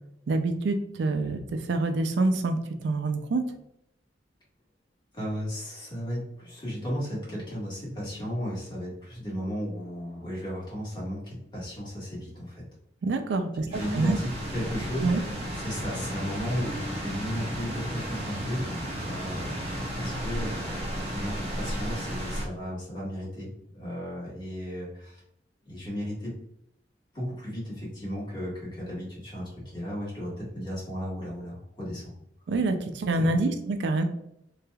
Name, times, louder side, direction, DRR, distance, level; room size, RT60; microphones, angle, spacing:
voice 1, 0.3-3.4 13.0-13.7 13.9-14.2 15.0-15.2 32.5-34.0, right 2 dB, 75° right, 7 dB, 0.4 m, -26 dB
voice 2, 5.1-12.6 13.6-25.2 25.6-26.3 27.1-32.1 33.2-33.4, equal, 25° left, -6 dB, 1.4 m, -35 dB
sound 1, 13.7-22.4, equal, 35° right, 0.8 m, -33 dB
3.2 x 2.8 x 2.2 m, 0.78 s
head